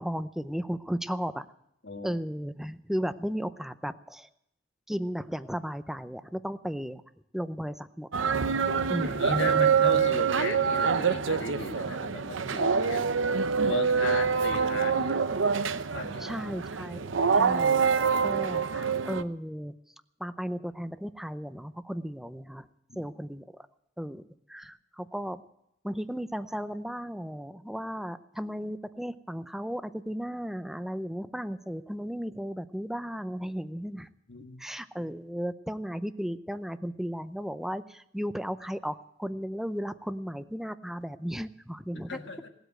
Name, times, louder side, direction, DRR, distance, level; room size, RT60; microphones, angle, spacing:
voice 1, 0.0-1.5 2.0-4.3 4.9-7.0 7.3-8.1 8.9-9.6 16.2-17.1 17.4-17.9 18.2-19.7 20.2-22.7 23.0-23.4 24.0-24.2 24.5-25.4 25.8-34.1 34.6-42.2, equal, ahead, 12 dB, 0.6 m, -35 dB
voice 2, 1.8-2.2 9.0-13.2 13.6-15.2 15.9-16.5 22.9-23.1 34.3-34.7 41.9-42.5, left 3 dB, 65° left, 5 dB, 1.8 m, -36 dB
sound 1, 8.1-19.2, right 6 dB, 85° right, 0.7 m, -26 dB
18.0 x 8.1 x 9.0 m, 0.79 s
head